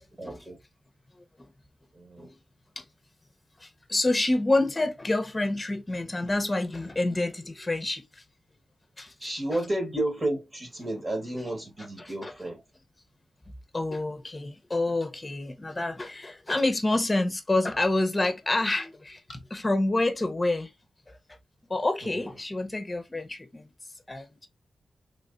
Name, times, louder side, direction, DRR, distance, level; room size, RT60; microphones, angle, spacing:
voice 1, 0.2-0.6 1.9-2.3 9.2-12.6 22.1-22.3, right 1 dB, 30° right, 1.5 m, -32 dB
voice 2, 3.6-8.2 9.0-9.1 9.5-9.6 12.0-12.3 13.7-20.7 21.7-23.7 24.1-24.5, left 2 dB, 25° left, 0.9 m, -28 dB
3.4 x 3.2 x 2.6 m
cardioid pair, 70°, 0 cm